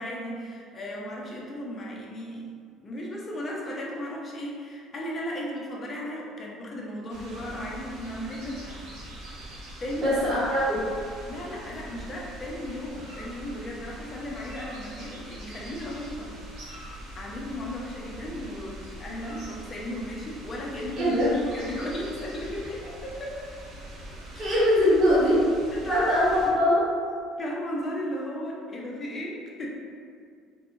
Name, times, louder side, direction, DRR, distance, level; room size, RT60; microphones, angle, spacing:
voice 1, 0.0-2.5 2.8-8.8 9.8-10.2 11.3-16.3 16.7-16.8 17.1-21.2 21.5-23.5 24.3-24.6 25.7-26.1 27.4-29.7, left 1 dB, 30° left, -3 dB, 0.6 m, -35 dB
sound 1, 7.1-26.5, right 1 dB, 70° right, 0.8 m, -43 dB
voice 2, 10.0-10.9 21.0-21.3 24.4-25.4 25.9-26.8, equal, 35° right, -9 dB, 1.0 m, -22 dB
3.4 x 2.1 x 2.5 m, 2.2 s
cardioid pair, 115°, 0 cm